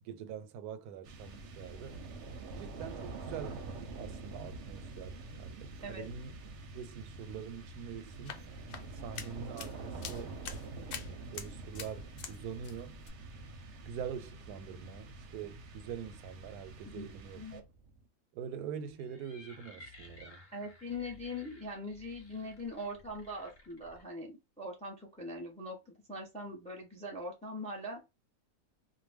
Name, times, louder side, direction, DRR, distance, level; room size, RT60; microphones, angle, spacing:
voice 1, 0.0-2.0 2.6-3.6 4.0-6.4 6.7-8.4 8.9-10.4 10.8-13.0 13.9-17.6 18.3-20.4, right 7 dB, 90° right, 1.1 m, -44 dB
sound 1, 1.0-18.0, right 3 dB, 60° right, 0.8 m, -46 dB
sound 2, 8.0-12.4 12.6-13.1, left 7 dB, 85° left, 1.1 m, -46 dB
sound 3, 18.9-24.0, left 1 dB, 40° left, 0.7 m, -56 dB
voice 2, 20.5-28.0, left 1 dB, 10° left, 0.4 m, -42 dB
2.5 x 2.2 x 3.3 m
omnidirectional pair, 1.6 m